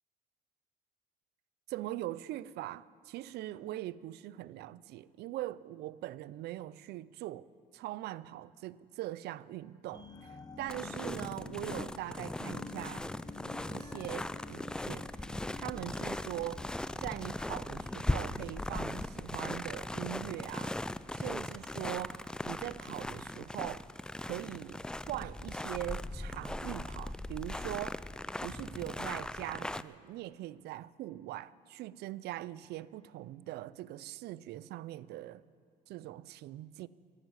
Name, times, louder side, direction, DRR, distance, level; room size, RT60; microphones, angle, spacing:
voice 1, 1.7-7.5 7.7-13.0 13.7-16.7 17.0-20.8 21.1-23.9 24.2-24.8 25.1-28.1 28.4-35.4 35.9-36.9, right 15 dB, 75° right, 0.5 m, -42 dB
sound 1, 9.9-21.0 21.4-21.5, left 3 dB, 25° left, 1.1 m, -51 dB
sound 2, 10.7-29.8, left 1 dB, 5° left, 0.3 m, -39 dB
13.0 x 11.0 x 9.7 m
cardioid pair, 110°, 17 cm